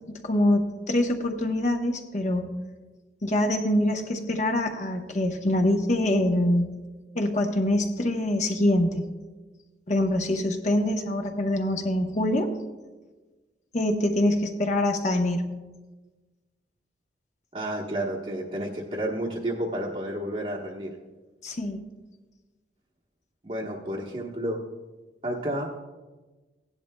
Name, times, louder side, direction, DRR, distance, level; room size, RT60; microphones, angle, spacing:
voice 1, 0.2-2.5 3.2-6.7 7.1-9.1 9.9-12.5 13.7-15.4 21.4-21.8, left 1 dB, 40° left, 4 dB, 0.8 m, -24 dB
voice 2, 17.5-20.9 23.4-24.6 25.2-25.7, right 1 dB, 35° right, -3 dB, 0.9 m, -31 dB
16.5 x 11.0 x 2.2 m, 1.2 s
head